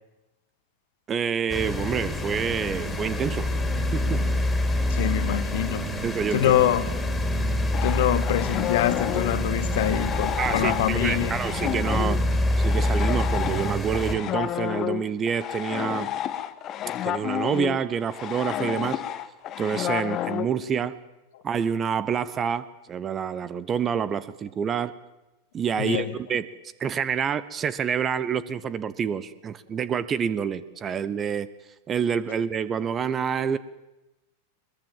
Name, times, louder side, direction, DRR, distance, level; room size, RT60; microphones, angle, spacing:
voice 1, 1.1-3.5 3.9-4.2 6.0-6.5 10.4-12.2 12.6-16.1 17.0-19.0 19.6-20.9 21.4-24.9 25.5-26.5 26.8-31.5 31.9-33.6, right 7 dB, 25° right, 0.9 m, -27 dB
sound 1, 1.5-14.2, left 1 dB, 15° left, 3.2 m, -26 dB
voice 2, 4.9-5.9 6.3-7.0 7.8-11.4 25.8-26.1, left 12 dB, 55° left, 1.4 m, -25 dB
sound 2, 7.7-20.5, left 11 dB, 30° left, 1.2 m, -31 dB
21.5 x 21.5 x 7.5 m
figure-of-eight pair, 90°, 0 cm